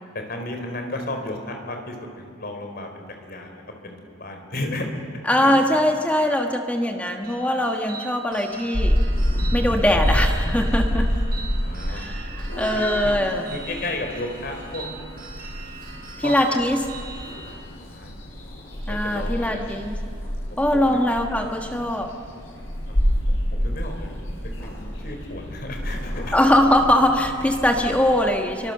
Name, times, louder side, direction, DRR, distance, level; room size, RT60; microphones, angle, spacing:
voice 1, 0.1-4.9 5.4-5.5 11.3-12.0 12.7-13.1 13.5-14.9 16.2-16.6 17.5-18.1 18.9-19.8 20.7-21.0 22.9-23.0 23.3-26.3, left 2 dB, 50° left, 4 dB, 3.9 m, -34 dB
voice 2, 5.3-9.0 9.5-11.1 11.9-13.4 16.2-16.9 18.9-20.0 20.6-22.1 26.3-28.7, left 1 dB, 5° left, 3 dB, 1.4 m, -21 dB
sound 1, 7.2-17.5, right 4 dB, 50° right, 5.6 m, -41 dB
Purr / Meow, 8.7-28.2, equal, 80° left, 8.0 m, -28 dB
29.0 x 24.0 x 6.8 m, 2.3 s
head